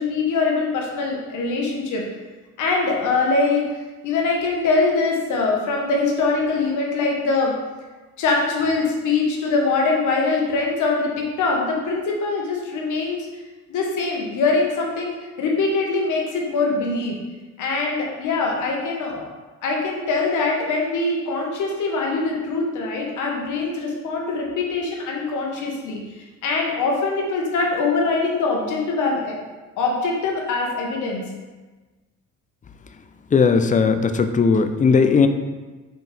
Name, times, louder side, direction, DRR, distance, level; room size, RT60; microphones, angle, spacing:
voice 1, 0.0-2.0 2.6-3.6 4.0-7.5 8.2-13.3 13.7-17.2 17.6-19.3 19.6-26.0 26.4-29.4 29.8-31.2, left 3 dB, 80° left, -1 dB, 1.4 m, -23 dB
voice 2, 33.3-35.3, left 5 dB, 25° left, 8 dB, 0.5 m, -17 dB
6.0 x 4.6 x 3.4 m, 1.3 s
cardioid pair, 90°, 30 cm